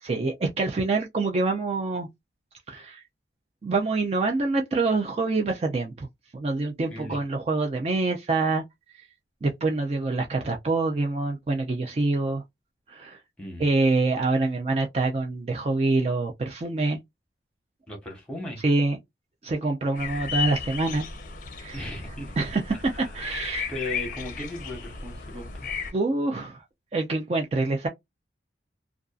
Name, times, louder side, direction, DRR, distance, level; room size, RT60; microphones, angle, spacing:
voice 1, 0.0-2.1 2.7-3.0 3.6-6.1 6.3-8.6 9.4-12.4 12.9-13.2 13.6-17.0 18.6-19.0 19.4-21.1 21.6-21.8 22.4-23.7 25.9-26.6 26.9-27.9, right 3 dB, 35° right, 0.3 m, -26 dB
voice 2, 6.9-7.2 13.4-13.7 17.9-18.6 21.7-22.4 22.7-23.2 23.7-25.8, left 1 dB, 5° left, 1.0 m, -37 dB
sound 1, 20.0-25.9, left 6 dB, 45° left, 0.5 m, -34 dB
2.5 x 2.3 x 2.3 m
head